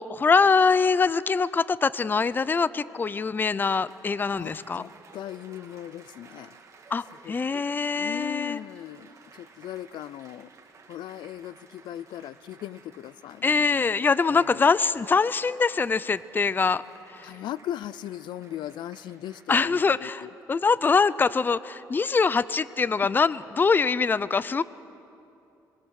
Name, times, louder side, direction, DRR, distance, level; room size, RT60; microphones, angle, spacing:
voice 1, 0.0-4.8 6.9-8.6 13.4-16.8 17.1-17.3 19.5-24.6, left 5 dB, 25° left, 18 dB, 0.5 m, -23 dB
Applause, 3.3-19.4, right 4 dB, 40° right, 2.3 m, -54 dB
voice 2, 4.3-6.5 7.2-7.6 8.0-10.5 10.9-13.9 14.3-14.7 17.2-20.3 23.0-23.1, left 12 dB, 75° left, 18 dB, 0.5 m, -38 dB
26.0 x 22.0 x 6.5 m, 2.7 s
cardioid pair, 100°, 8 cm